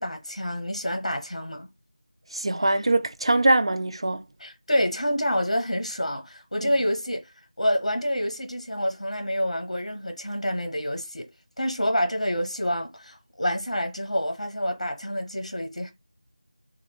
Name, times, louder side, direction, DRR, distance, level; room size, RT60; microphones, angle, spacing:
voice 1, 0.0-1.7 4.4-11.3 11.6-15.9, equal, 70° left, 0.9 m, -28 dB
voice 2, 2.3-4.2 6.6-6.7, right 2 dB, 50° right, 0.4 m, -22 dB
3.0 x 2.3 x 3.0 m
figure-of-eight pair, 170°, 4 cm